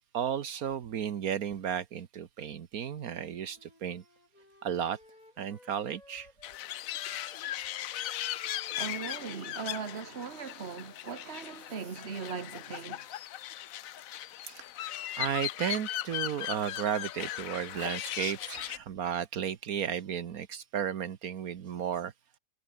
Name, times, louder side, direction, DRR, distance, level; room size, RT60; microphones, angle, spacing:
voice 1, 0.1-4.0 4.6-5.0 5.4-6.3 14.4-14.6 15.2-22.1, right 8 dB, 80° right, 1.5 m, -34 dB
Wind instrument woodwind instrument, 2.9-6.6 6.9-11.0, left 2 dB, 25° left, 3.3 m, -59 dB
sound 1, 6.4-18.8, left 13 dB, 75° left, 1.1 m, -38 dB
voice 2, 8.8-13.1, right 6 dB, 45° right, 1.8 m, -39 dB
omnidirectional pair, 1.5 m